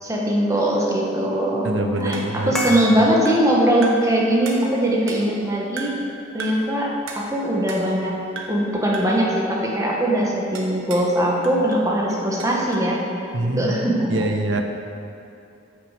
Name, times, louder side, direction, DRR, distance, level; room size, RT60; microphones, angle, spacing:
voice 1, 0.0-1.7 2.0-5.9 6.3-8.2 8.5-13.0 13.4-14.3, right 1 dB, 15° right, -3 dB, 1.6 m, -21 dB
voice 2, 1.6-2.5 13.3-13.8 14.1-14.6, right 2 dB, 65° right, 4 dB, 1.1 m, -24 dB
sound 1, 2.1-3.6 3.8-4.2 4.4-5.4 5.8-6.1 6.4-6.7 7.1-8.1 8.3-8.7 8.9-9.3 10.5-11.1 11.4-12.9, right 3 dB, 90° right, 1.5 m, -36 dB
sound 2, 2.6-9.0 9.2-9.4, left 1 dB, 5° left, 1.3 m, -35 dB
14.5 x 6.7 x 5.3 m, 2.7 s
head